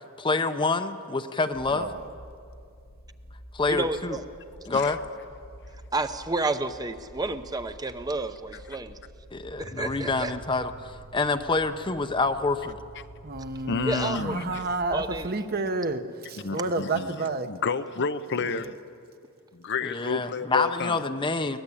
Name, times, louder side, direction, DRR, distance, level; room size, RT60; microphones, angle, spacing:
voice 1, 0.0-1.9 3.5-4.2 4.7-5.0 9.3-12.8 19.8-21.6, left 3 dB, 20° left, 9 dB, 0.7 m, -27 dB
sound 1, 1.5-15.3, equal, 80° left, 2.7 m, -49 dB
voice 2, 1.7-2.1 13.2-17.5 18.4-18.7, right 3 dB, 45° right, 8 dB, 1.1 m, -31 dB
voice 3, 3.7-4.2 5.9-9.0 9.6-10.3 13.8-14.4 14.9-15.3, right 2 dB, 15° right, 9 dB, 0.8 m, -30 dB
sound 2, 9.6-16.5, right 3 dB, 75° right, 6.2 m, -50 dB
voice 4, 13.7-14.6 16.4-17.1 17.5-18.7 19.5-21.0, left 5 dB, 55° left, 11 dB, 0.7 m, -30 dB
22.5 x 19.0 x 8.5 m, 2.4 s
head